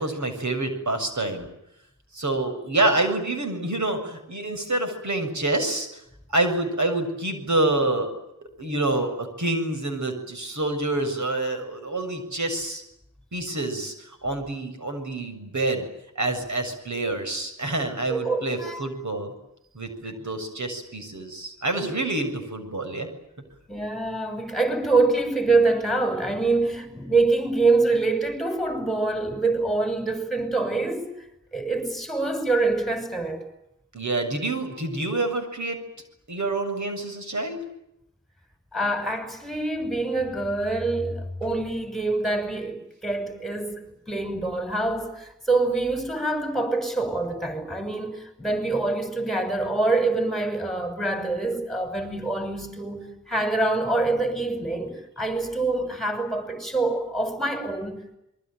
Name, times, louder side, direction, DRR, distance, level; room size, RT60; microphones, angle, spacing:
voice 1, 0.0-1.5 2.1-6.0 6.3-8.1 8.6-12.8 13.3-15.9 16.2-19.3 19.7-23.1 33.9-35.8 36.3-37.6, right 2 dB, 65° right, 7.1 m, -27 dB
voice 2, 18.1-18.9 20.0-20.1 23.7-31.1 31.5-33.4 38.7-43.8 44.1-58.2, right 3 dB, ahead, 6.5 m, -25 dB
26.5 x 23.5 x 9.1 m
wide cardioid pair, 70°, 31 cm